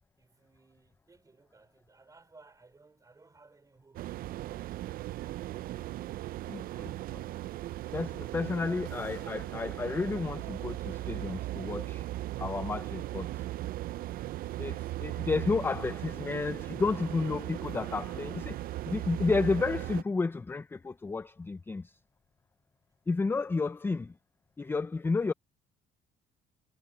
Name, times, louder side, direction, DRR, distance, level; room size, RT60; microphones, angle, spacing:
voice 1, 0.2-4.8 8.5-8.9 23.2-23.6, right 3 dB, 20° right, 3.8 m, -60 dB
sound 1, 3.9-20.0, right 15 dB, 60° right, 0.4 m, -38 dB
voice 2, 6.5-7.2 7.9-12.1 12.4-13.3 14.6-21.9 23.1-24.1 24.6-25.3, left 4 dB, 15° left, 0.4 m, -31 dB
sound 2, 7.9-11.9, right 16 dB, 85° right, 3.7 m, -54 dB
cardioid pair, 110°, 17 cm